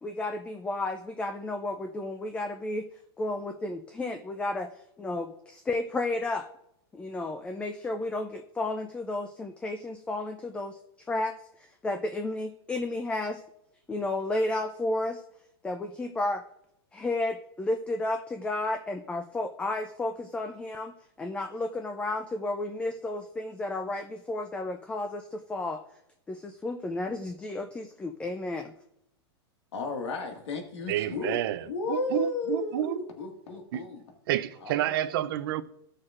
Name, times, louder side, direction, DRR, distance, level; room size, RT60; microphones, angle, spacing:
voice 1, 0.0-2.9 3.2-4.7 5.0-6.5 6.9-10.8 11.1-11.3 11.6-13.4 13.9-15.2 15.6-16.4 16.9-25.8 26.3-28.7, left 2 dB, 10° left, 0.3 m, -32 dB
voice 2, 29.7-34.0 34.6-35.0, left 3 dB, 85° left, 1.8 m, -34 dB
voice 3, 30.9-33.0 34.3-35.6, right 13 dB, 55° right, 0.6 m, -29 dB
14.5 x 6.4 x 2.5 m
supercardioid pair, 145°, 14 cm